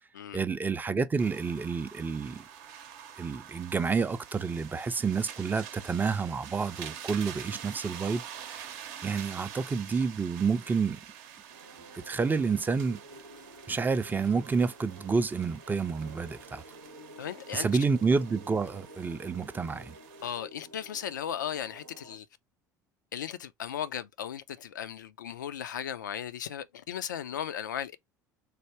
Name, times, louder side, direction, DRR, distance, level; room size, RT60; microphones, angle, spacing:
voice 1, 0.3-2.5 3.2-8.7 9.0-11.0 11.9-13.0 13.7-16.6 17.5-20.0, right 5 dB, 15° right, 0.5 m, -29 dB
sound 1, 1.2-20.4, right 9 dB, 60° right, 0.7 m, -47 dB
sound 2, 11.5-22.2, right 1 dB, 90° right, 0.8 m, -51 dB
voice 2, 17.2-17.7 20.2-22.3 23.1-28.0, left 9 dB, 75° left, 0.4 m, -36 dB
3.4 x 2.6 x 4.4 m
figure-of-eight pair, 65°, 10 cm